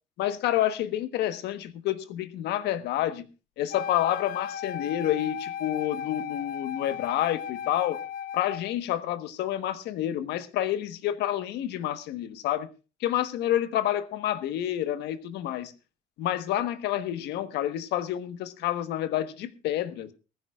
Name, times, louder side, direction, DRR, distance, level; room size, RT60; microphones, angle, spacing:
voice 1, 0.2-3.3 3.6-8.0 8.3-12.7 13.0-15.7 16.2-20.1, left 12 dB, 80° left, 1.3 m, -29 dB
Wind instrument woodwind instrument, 3.7-8.7, left 8 dB, 60° left, 0.7 m, -36 dB
19.0 x 15.0 x 2.4 m
cardioid pair, 110°, 17 cm